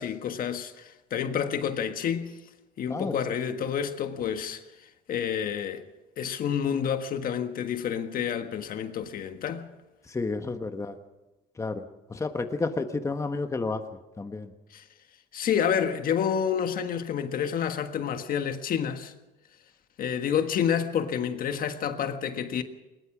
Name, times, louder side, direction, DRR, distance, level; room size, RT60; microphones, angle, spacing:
voice 1, 0.0-2.3 2.8-4.6 5.1-5.8 6.2-9.7 14.7-14.8 15.3-19.1 20.0-22.6, left 8 dB, 55° left, 1.6 m, -29 dB
voice 2, 10.1-11.0 11.6-11.8 12.1-13.8 14.2-14.5, left 3 dB, 20° left, 1.3 m, -30 dB
20.5 x 20.5 x 6.1 m
cardioid pair, 110°, 17 cm